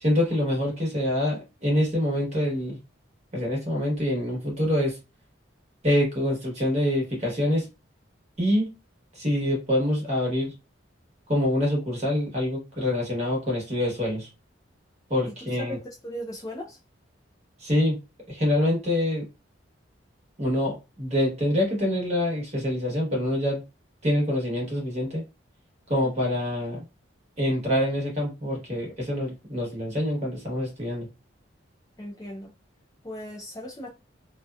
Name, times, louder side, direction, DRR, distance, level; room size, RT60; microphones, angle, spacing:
voice 1, 0.0-2.8 3.3-5.0 5.8-7.7 8.4-8.7 9.1-10.5 11.3-14.3 15.1-15.8 17.6-18.0 18.3-19.2 20.4-23.6 24.0-25.2 25.9-26.8 27.4-31.1, left 1 dB, 35° right, 1.1 m, -25 dB
voice 2, 15.7-16.8 26.0-26.2 32.0-32.5 33.0-33.9, equal, 20° left, 0.3 m, -37 dB
2.6 x 2.2 x 2.2 m
head